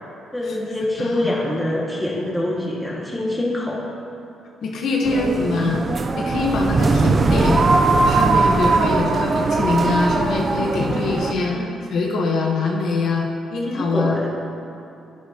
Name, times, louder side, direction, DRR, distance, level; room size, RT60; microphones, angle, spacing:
voice 1, 0.3-3.8 11.4-11.7 13.6-14.3, left 1 dB, 5° left, -4 dB, 1.9 m, -25 dB
voice 2, 1.0-1.3 4.6-5.8 6.2-7.7 8.0-11.6 11.9-14.2, left 3 dB, 65° left, -1 dB, 1.1 m, -23 dB
sound 1, 5.0-11.3, right 3 dB, 35° right, 0.5 m, -19 dB
10.0 x 9.7 x 2.9 m, 2.7 s
cardioid pair, 90°, 0 cm